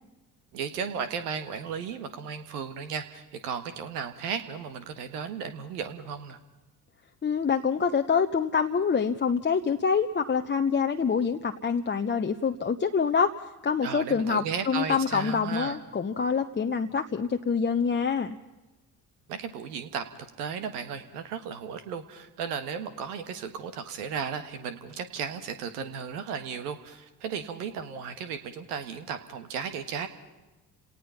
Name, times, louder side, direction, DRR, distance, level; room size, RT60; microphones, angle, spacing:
voice 1, 0.5-6.4 13.8-15.8 19.3-20.0 20.4-30.1, right 6 dB, 80° right, 9 dB, 1.6 m, -35 dB
voice 2, 7.2-13.3 13.6-18.4, left 6 dB, 25° left, 5 dB, 0.9 m, -26 dB
30.0 x 18.5 x 5.7 m, 1.1 s
hypercardioid pair, 50°, 46 cm